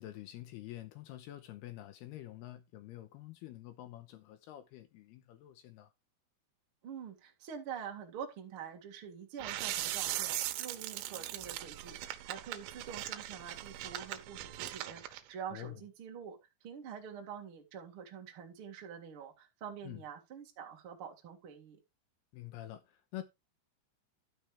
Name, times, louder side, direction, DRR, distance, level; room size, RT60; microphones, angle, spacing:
voice 1, 0.0-5.9 15.5-15.8 19.8-20.0 22.3-23.2, left 14 dB, 90° left, 2.3 m, -47 dB
voice 2, 6.8-21.8, right 7 dB, 50° right, 1.6 m, -46 dB
sound 1, 9.4-15.2, right 14 dB, 90° right, 3.3 m, -39 dB
12.5 x 6.7 x 3.4 m
omnidirectional pair, 5.7 m